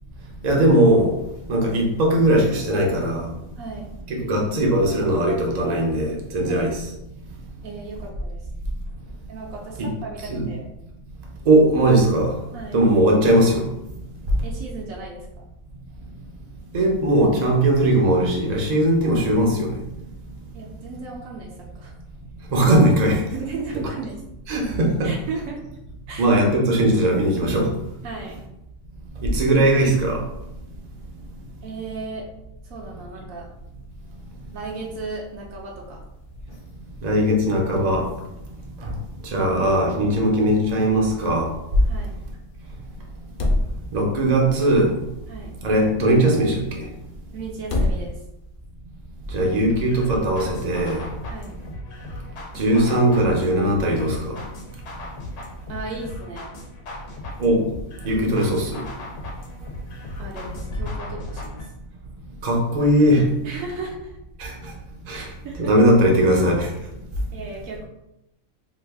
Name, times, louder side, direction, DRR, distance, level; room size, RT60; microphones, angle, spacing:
voice 1, 0.4-1.2 1.5-3.3 4.1-6.8 9.8-9.9 10.3-10.5 11.5-12.3 12.7-13.7 16.7-19.7 22.5-23.2 24.5-25.1 26.2-27.7 29.2-30.2 37.0-38.1 39.2-41.5 43.9-44.9 45.6-46.8 49.3-51.0 52.5-54.4 57.4-57.6 58.0-58.8 62.4-63.3 64.4-64.5 65.1-65.2 65.6-66.7, right 1 dB, 40° right, -1 dB, 0.6 m, -19 dB
voice 2, 3.6-3.9 6.5-6.7 7.6-8.5 9.3-10.7 12.5-12.8 14.4-15.5 20.5-21.9 23.3-24.2 25.0-25.6 26.1-26.3 28.0-28.4 31.6-32.3 32.6-33.5 34.5-36.0 41.9-42.2 45.3-45.6 47.3-48.2 51.3-51.6 55.7-56.5 60.2-61.7 63.4-64.1 65.1-65.7 67.3-67.8, right 3 dB, 75° right, -1 dB, 1.0 m, -35 dB
sound 1, 33.4-48.7, left 1 dB, 60° left, 0.5 m, -34 dB
sound 2, 49.7-61.7, left 2 dB, 85° left, 1.2 m, -38 dB
3.0 x 2.4 x 3.4 m, 0.86 s
omnidirectional pair, 1.5 m